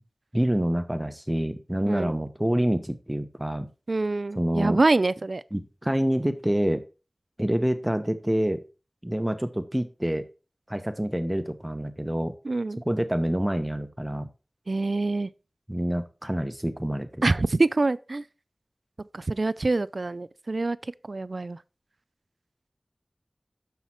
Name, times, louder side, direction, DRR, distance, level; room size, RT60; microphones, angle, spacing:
voice 1, 0.3-3.7 4.4-4.8 5.5-6.8 7.4-8.6 9.0-10.3 10.7-12.3 12.9-14.3 15.7-17.2, equal, 15° right, 0.7 m, -27 dB
voice 2, 3.9-5.4 12.4-12.8 14.7-15.3 17.2-18.2 19.1-21.6, right 2 dB, 75° right, 0.4 m, -25 dB
7.3 x 5.6 x 4.4 m
wide cardioid pair, 55°, 0 cm